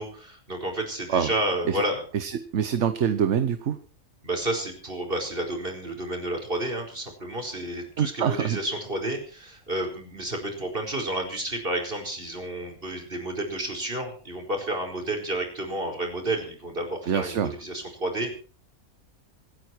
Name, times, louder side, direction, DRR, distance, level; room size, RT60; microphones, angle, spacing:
voice 1, 0.0-2.0 4.2-18.3, right 1 dB, 45° right, 2 dB, 4.9 m, -31 dB
voice 2, 2.1-3.8 8.0-8.6 17.1-17.5, right 8 dB, 70° right, 10 dB, 1.3 m, -25 dB
26.0 x 9.6 x 4.6 m, 0.41 s
omnidirectional pair, 1.3 m